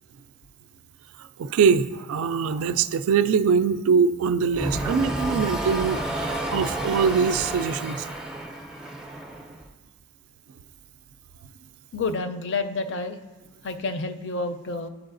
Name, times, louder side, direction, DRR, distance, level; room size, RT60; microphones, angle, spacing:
voice 1, 1.2-8.1, right 6 dB, 75° right, 12 dB, 0.3 m, -23 dB
sound 1, 4.5-9.7, right 1 dB, 5° right, 0.5 m, -30 dB
voice 2, 11.9-13.2 13.6-14.9, left 3 dB, 50° left, 8 dB, 0.4 m, -29 dB
13.0 x 4.7 x 2.5 m, 1.2 s
head